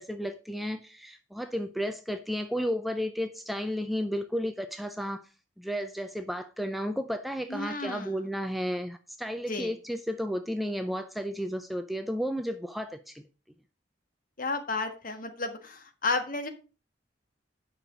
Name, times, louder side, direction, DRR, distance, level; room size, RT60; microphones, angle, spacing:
voice 1, 0.0-5.2 5.6-13.2, equal, ahead, 0.5 m, -33 dB
voice 2, 7.5-8.2 9.5-9.7 14.4-16.5, left 3 dB, 45° left, 1.6 m, -32 dB
9.5 x 6.2 x 5.0 m
head